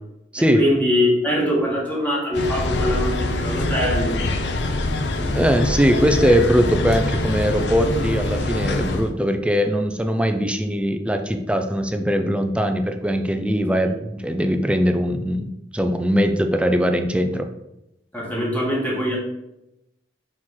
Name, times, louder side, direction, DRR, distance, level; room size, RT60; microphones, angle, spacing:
voice 1, 0.5-4.2 13.8-13.9 18.1-19.2, left 1 dB, 10° left, -3 dB, 1.6 m, -22 dB
sound 1, 2.3-9.1, left 2 dB, 75° left, 0.7 m, -24 dB
voice 2, 5.2-17.5, equal, 5° right, 6 dB, 0.5 m, -21 dB
4.6 x 4.4 x 5.6 m, 0.87 s
head